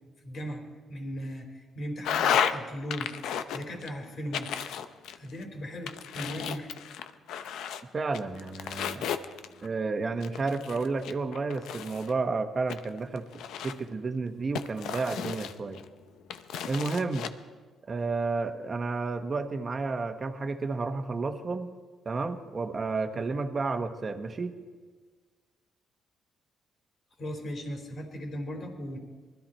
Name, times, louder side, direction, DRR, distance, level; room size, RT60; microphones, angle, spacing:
voice 1, 0.2-3.1 3.5-4.5 5.2-6.7 27.2-29.0, equal, 55° left, 3 dB, 3.3 m, -37 dB
sound 1, 2.0-2.6 2.9-3.9 4.3-5.4 5.9-7.8 8.1-9.7 10.2-12.1 12.7-13.9 14.6-15.9 16.3-17.3, left 8 dB, 80° left, 0.7 m, -32 dB
voice 2, 7.9-9.1 9.6-13.3 13.6-15.8 16.7-17.3 17.9-21.7 22.0-24.5, right 3 dB, 35° right, 7 dB, 1.2 m, -31 dB
20.0 x 13.0 x 4.4 m, 1.4 s
cardioid pair, 90°, 0 cm